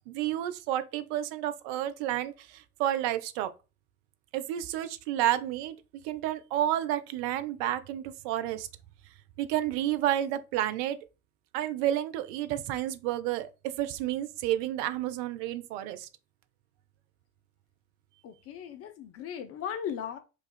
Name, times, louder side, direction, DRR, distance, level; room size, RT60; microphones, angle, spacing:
voice 1, 0.1-3.5 4.3-5.7 6.0-8.7 9.4-11.0 11.5-16.1, right 12 dB, 55° right, 0.5 m, -30 dB
voice 2, 18.2-20.2, left 8 dB, 40° left, 0.5 m, -37 dB
3.1 x 2.3 x 4.1 m
figure-of-eight pair, 55°, 40 cm